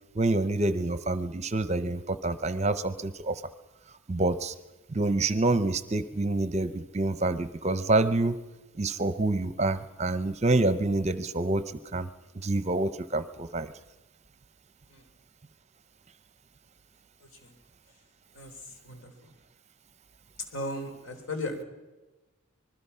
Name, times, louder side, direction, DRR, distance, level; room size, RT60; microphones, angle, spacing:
voice 1, 0.1-3.4 4.1-4.5 4.9-8.4 8.8-11.6 11.9-12.1 12.4-13.7, right 2 dB, 30° right, 13 dB, 0.7 m, -27 dB
voice 2, 18.3-19.3 20.4-21.6, left 1 dB, 65° left, 5 dB, 3.6 m, -37 dB
26.0 x 20.5 x 5.7 m, 1.2 s
head